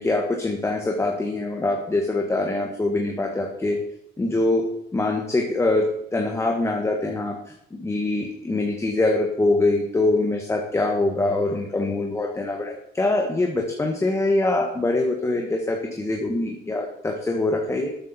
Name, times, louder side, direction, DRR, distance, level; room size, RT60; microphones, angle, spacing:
voice 1, 0.0-3.8 4.2-4.6 4.9-5.9 6.1-7.4 7.7-17.9, left 2 dB, 15° left, 2 dB, 1.6 m, -24 dB
12.5 x 8.7 x 4.4 m, 0.76 s
cardioid pair, 110°, 17 cm